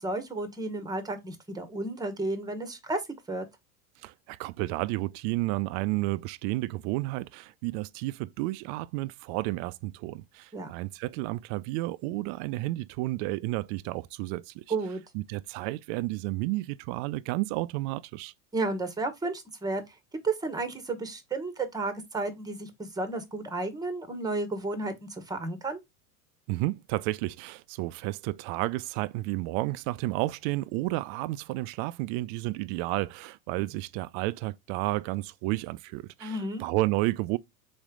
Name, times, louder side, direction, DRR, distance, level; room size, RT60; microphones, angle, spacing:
voice 1, 0.0-3.0 3.3-3.4 10.5-10.7 14.7-15.0 18.5-19.8 20.2-25.8 36.2-36.6, right 2 dB, 10° right, 1.0 m, -32 dB
voice 2, 4.0-14.6 15.1-18.3 26.5-37.4, right 19 dB, 50° right, 0.5 m, -31 dB
4.3 x 3.2 x 3.6 m
hypercardioid pair, 95°, 45 cm